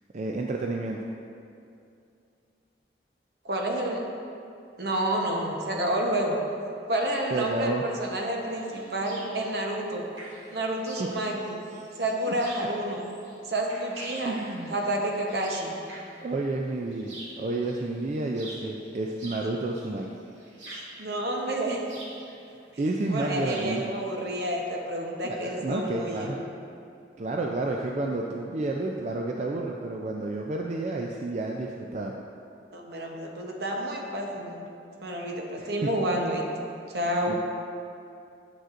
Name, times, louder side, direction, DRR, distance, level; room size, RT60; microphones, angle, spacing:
voice 1, 0.1-1.0 7.3-7.8 14.3-14.8 16.2-20.1 22.8-23.8 25.2-26.4 27.2-32.1 35.6-35.7 37.3-37.4, right 2 dB, 40° right, 0 dB, 0.3 m, -30 dB
voice 2, 3.4-4.0 4.8-6.4 6.9-10.0 10.5-11.6 12.0-13.0 13.5-14.3 14.7-15.7 20.7-21.8 23.1-26.4 32.7-34.8 35.0-36.4 36.9-37.4, right 1 dB, 60° right, 0 dB, 0.9 m, -29 dB
sound 1, 7.9-24.5, right 1 dB, 90° right, 1.8 m, -47 dB
9.0 x 7.8 x 2.5 m, 2.6 s
head